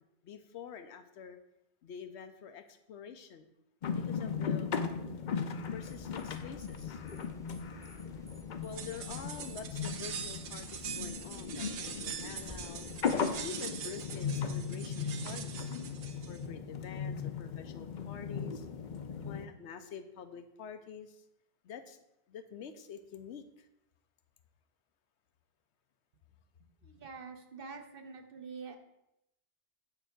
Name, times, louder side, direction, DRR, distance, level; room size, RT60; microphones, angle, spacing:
voice 1, 0.2-1.4 1.8-3.5 3.9-4.7 5.7-7.0 8.6-12.9 13.4-15.7 16.3-18.7 19.2-21.2 21.6-22.0 22.3-23.7, left 7 dB, 85° left, 9 dB, 1.0 m, -47 dB
sound 1, 3.8-19.5, left 6 dB, 50° left, 0.6 m, -37 dB
sound 2, 5.8-13.4, left 1 dB, 5° left, 0.3 m, -53 dB
sound 3, 8.7-16.4, right 7 dB, 90° right, 1.0 m, -43 dB
voice 2, 26.8-28.8, right 5 dB, 55° right, 6 dB, 1.0 m, -46 dB
9.1 x 3.4 x 5.9 m, 0.85 s
omnidirectional pair, 1.1 m